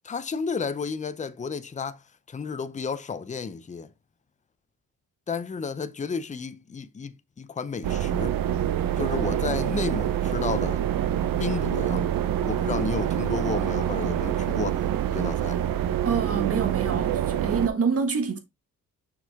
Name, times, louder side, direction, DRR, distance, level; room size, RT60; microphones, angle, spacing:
voice 1, 0.0-2.0 2.3-3.9 5.3-8.4 9.0-10.8 11.4-12.1 12.4-14.8 15.1-15.6, left 5 dB, 20° left, 0.6 m, -32 dB
sound 1, 7.8-17.7, right 10 dB, 75° right, 0.8 m, -26 dB
voice 2, 16.0-18.4, right 5 dB, 40° right, 1.7 m, -26 dB
6.2 x 4.8 x 3.5 m
cardioid pair, 105°, 35 cm